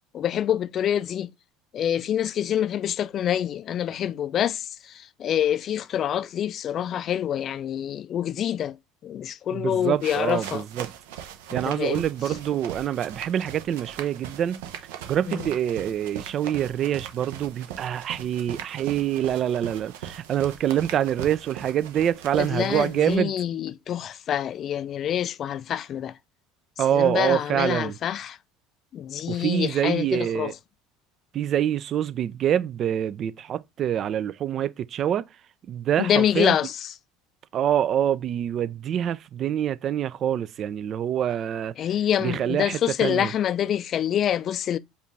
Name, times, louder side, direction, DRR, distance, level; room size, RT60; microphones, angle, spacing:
voice 1, 0.1-1.3 1.7-8.8 9.0-10.6 11.6-12.0 15.3-15.5 22.3-26.2 26.9-28.4 28.9-30.5 36.0-36.9 41.8-44.8, left 10 dB, 45° left, 0.3 m, -26 dB
voice 2, 9.5-10.9 11.5-14.6 15.1-23.3 26.8-28.0 29.3-30.5 31.3-35.3 35.7-36.6 37.5-41.7 42.2-43.3, right 10 dB, 45° right, 0.3 m, -26 dB
sound 1, 10.0-23.2, right 10 dB, 75° right, 0.7 m, -39 dB
5.0 x 2.4 x 3.1 m
hypercardioid pair, 75°, 0 cm